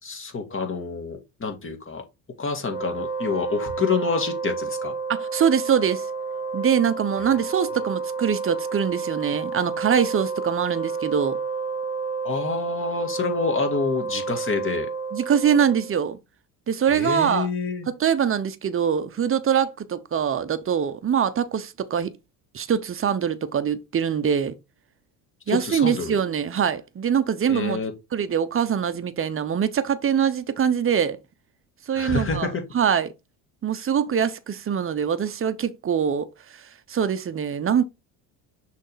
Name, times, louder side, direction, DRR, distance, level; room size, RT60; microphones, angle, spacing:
voice 1, 0.0-2.0 2.4-4.9 12.2-14.9 16.9-17.9 25.5-26.2 27.5-27.9 31.9-32.6, left 4 dB, 30° left, 2.1 m, -27 dB
Wind instrument woodwind instrument, 2.6-16.0, right 4 dB, 10° right, 1.7 m, -30 dB
voice 2, 5.1-6.1 6.5-11.4 15.1-16.2 16.7-17.5 17.9-22.1 22.5-24.5 25.5-27.8 28.1-31.2 31.9-33.1 33.6-36.3 36.9-37.8, right 8 dB, 30° right, 0.9 m, -23 dB
6.3 x 3.6 x 4.1 m
supercardioid pair, 85°, 44 cm